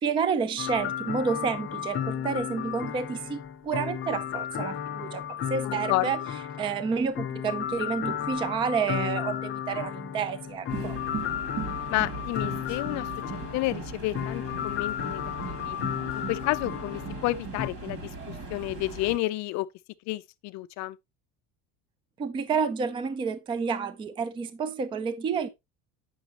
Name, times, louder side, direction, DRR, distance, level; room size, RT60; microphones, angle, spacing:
voice 1, 0.0-6.2 6.6-11.0 22.2-25.5, right 6 dB, 15° right, 0.3 m, -30 dB
sound 1, 0.6-17.7, left 10 dB, 30° left, 0.9 m, -34 dB
voice 2, 5.6-6.1 11.9-13.1 13.5-15.8 16.3-19.7 20.1-21.0, left 18 dB, 45° left, 0.5 m, -30 dB
sound 2, 10.7-19.2, right 4 dB, 45° right, 2.6 m, -38 dB
8.6 x 6.1 x 3.0 m
cardioid pair, 165°, 40 cm